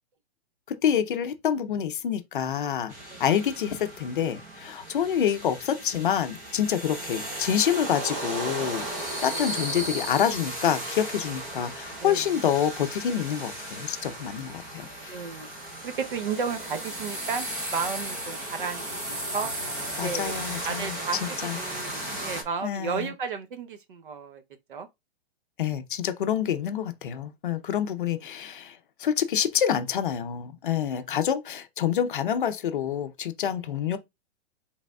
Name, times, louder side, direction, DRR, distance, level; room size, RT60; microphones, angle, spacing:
voice 1, 0.8-2.9 3.2-8.9 9.2-15.1 20.0-21.0 21.4-21.6 22.6-23.1 25.6-34.0, left 9 dB, 50° left, 0.6 m, -27 dB
sound 1, 2.9-22.4, right 1 dB, 15° right, 0.5 m, -35 dB
voice 2, 9.3-9.9 12.0-12.4 15.1-15.5 15.8-17.5 17.7-19.5 20.0-20.3 20.6-24.4 24.7-24.9 30.7-31.0 33.5-33.8, right 5 dB, 50° right, 0.8 m, -34 dB
5.0 x 3.4 x 2.3 m
hypercardioid pair, 175°, 33 cm